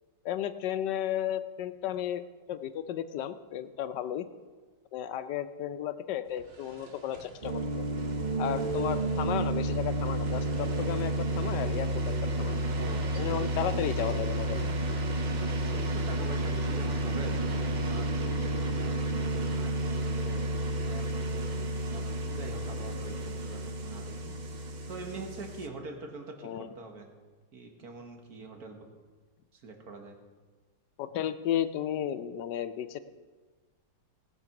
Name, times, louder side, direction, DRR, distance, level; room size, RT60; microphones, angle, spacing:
voice 1, 0.2-2.2 2.5-4.2 4.9-7.9 8.4-12.6 13.2-14.6 26.4-26.7 31.0-33.0, left 10 dB, 75° left, 12 dB, 1.2 m, -33 dB
sound 1, 6.3-8.0 8.3-9.5 10.0-11.4 11.7-11.8 12.4-13.6 13.9-15.8, right 2 dB, 40° right, 1.1 m, -49 dB
sound 2, 7.4-25.7, right 1 dB, 75° right, 0.4 m, -31 dB
voice 2, 12.8-13.3 15.6-20.5 20.9-27.1 27.5-28.9 29.5-30.2, right 3 dB, 55° right, 3 dB, 1.9 m, -44 dB
18.0 x 6.9 x 5.9 m, 1.4 s
omnidirectional pair, 2.0 m